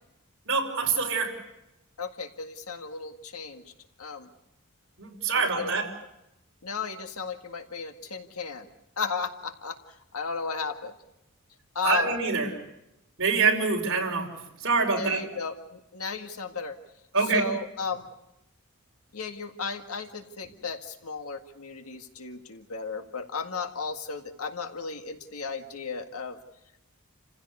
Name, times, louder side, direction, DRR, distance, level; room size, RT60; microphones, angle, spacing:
voice 1, 0.5-1.4 5.0-5.9 11.8-12.5 13.2-14.3 14.6-15.2 17.1-17.4, right 4 dB, 60° right, 0 dB, 5.2 m, -25 dB
voice 2, 2.0-3.6 4.0-4.3 5.4-5.7 6.6-8.7 9.0-9.8 10.1-10.9 11.8-12.1 15.0-16.8 17.3-18.0 19.1-26.4, left 4 dB, 85° left, 6 dB, 1.8 m, -34 dB
29.0 x 16.0 x 8.3 m, 0.88 s
head